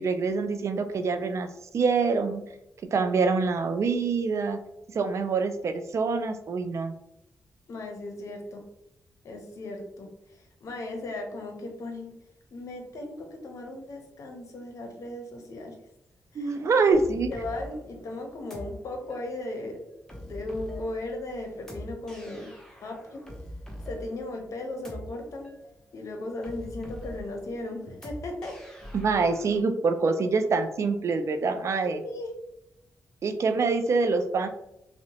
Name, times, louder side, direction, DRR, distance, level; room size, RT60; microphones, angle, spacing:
voice 1, 0.0-1.5 1.7-2.4 2.9-4.6 4.9-6.9 16.4-17.3 28.9-32.0 33.2-34.5, right 4 dB, 60° right, 8 dB, 0.3 m, -25 dB
voice 2, 7.7-8.6 9.2-12.1 12.5-15.7 16.3-16.6 17.3-19.8 20.1-22.5 22.8-23.3 23.9-25.5 25.9-28.6 31.8-32.3, left 2 dB, 70° left, 3 dB, 0.6 m, -37 dB
sound 1, 16.9-29.6, left 1 dB, 10° left, 0.7 m, -43 dB
2.8 x 2.1 x 2.7 m, 0.82 s
cardioid pair, 70°, 6 cm